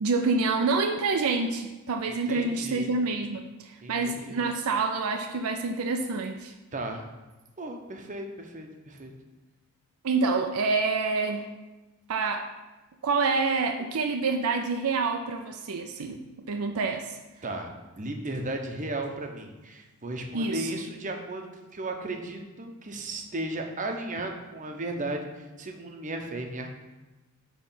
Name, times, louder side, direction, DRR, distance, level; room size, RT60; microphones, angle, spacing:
voice 1, 0.0-6.5 10.0-11.5 12.1-12.5 13.0-16.2 16.5-17.2 20.3-20.8, right 4 dB, 70° right, 4 dB, 0.5 m, -27 dB
voice 2, 2.3-2.9 3.8-4.4 6.7-7.0 7.6-9.1 17.4-17.7 18.0-25.3 25.6-26.7, right 2 dB, 35° right, 3 dB, 0.8 m, -35 dB
8.9 x 3.2 x 5.6 m, 1.1 s
head